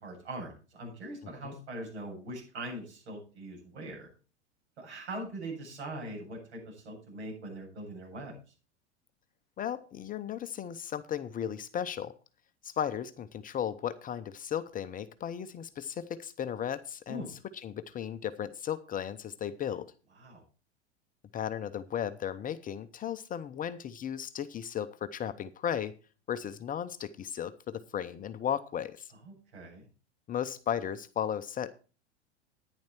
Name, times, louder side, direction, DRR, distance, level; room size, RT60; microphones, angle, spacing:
voice 1, 0.0-4.1 4.8-8.3 17.1-17.3 20.2-20.4 29.2-29.9, right 1 dB, 70° right, -1 dB, 8.0 m, -41 dB
voice 2, 9.6-12.2 12.6-19.9 21.3-25.9 26.3-29.1 30.3-31.7, left 9 dB, 25° left, 11 dB, 0.7 m, -35 dB
10.5 x 10.0 x 4.5 m, 0.34 s
hypercardioid pair, 90°, 35 cm